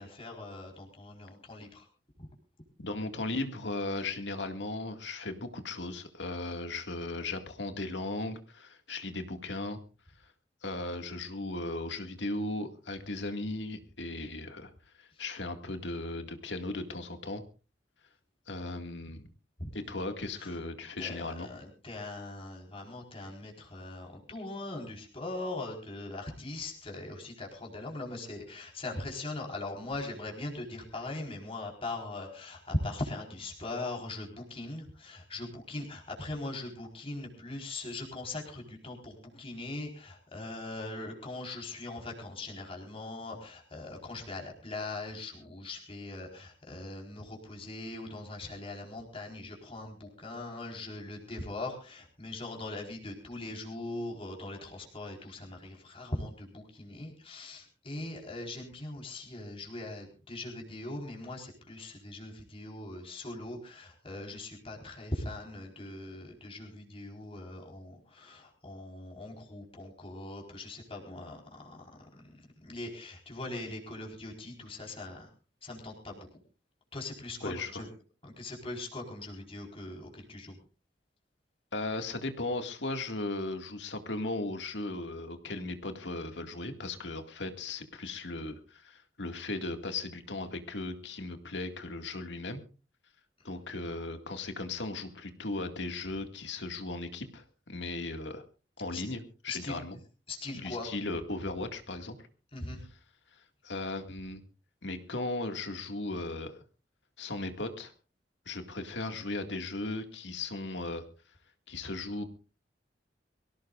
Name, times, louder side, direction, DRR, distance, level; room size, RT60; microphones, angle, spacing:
voice 1, 0.0-1.9 2.2-2.3 19.6-19.7 20.4-20.5 21.0-75.3 75.6-76.2 76.9-77.9 78.2-80.5 98.9-99.0 99.5-99.8 100.3-100.9 102.5-102.8, left 2 dB, 30° left, 0 dB, 4.3 m, -40 dB
voice 2, 2.8-9.8 10.6-14.7 15.0-17.4 18.5-19.3 19.7-21.5 77.4-77.8 81.7-92.6 93.4-98.4 98.8-100.0 100.5-102.3 103.6-104.4 104.8-106.6 107.2-107.9 108.5-111.0 111.7-112.2, left 2 dB, 80° left, 6 dB, 2.1 m, -37 dB
23.5 x 17.0 x 2.5 m, 0.34 s
head